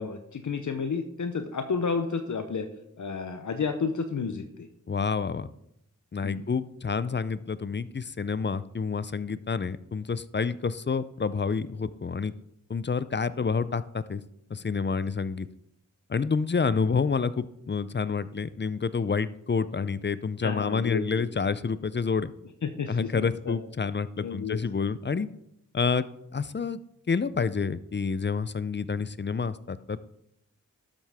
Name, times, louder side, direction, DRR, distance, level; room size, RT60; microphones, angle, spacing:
voice 1, 0.0-2.7 3.0-4.7 6.2-6.4 20.4-21.2 22.6-23.6 24.2-24.6, left 5 dB, 70° left, 7 dB, 0.8 m, -31 dB
voice 2, 4.9-5.5 6.1-12.3 12.7-14.2 14.5-15.5 16.1-22.3 22.9-25.3 25.7-26.8 27.1-30.0, left 5 dB, 35° left, 15 dB, 0.5 m, -28 dB
12.0 x 7.4 x 3.5 m, 0.78 s
cardioid pair, 50°, 31 cm